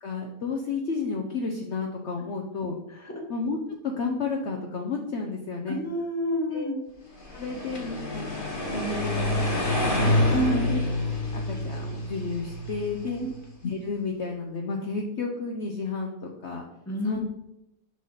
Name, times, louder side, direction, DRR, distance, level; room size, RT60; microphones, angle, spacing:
voice 1, 0.0-2.8 3.3-3.6 3.8-5.8 6.5-6.7 7.3-10.1 10.7-10.8 11.3-13.2 13.6-16.1 16.4-16.6 17.0-17.3, left 4 dB, 55° left, 0 dB, 0.9 m, -32 dB
voice 2, 5.7-6.8 10.3-10.7 16.9-17.3, equal, 10° left, 0 dB, 1.1 m, -28 dB
sound 1, 7.2-13.3, left 1 dB, 35° left, 1.4 m, -27 dB
6.4 x 5.5 x 3.9 m, 0.86 s
omnidirectional pair, 1.7 m